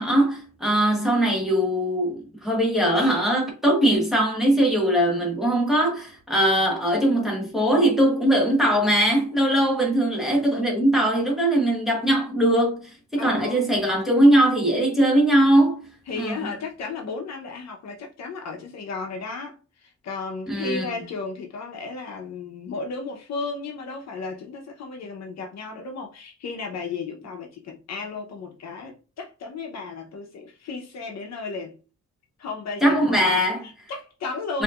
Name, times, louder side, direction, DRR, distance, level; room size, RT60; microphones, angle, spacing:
voice 1, 0.0-15.9 16.2-16.5 20.5-20.9 32.8-33.6 34.5-34.6, right 1 dB, ahead, 1.2 m, -21 dB
voice 2, 13.1-13.7 16.1-31.8 32.4-34.6, left 4 dB, 60° left, 0.9 m, -34 dB
4.6 x 2.8 x 2.4 m
wide cardioid pair, 160°, 30 cm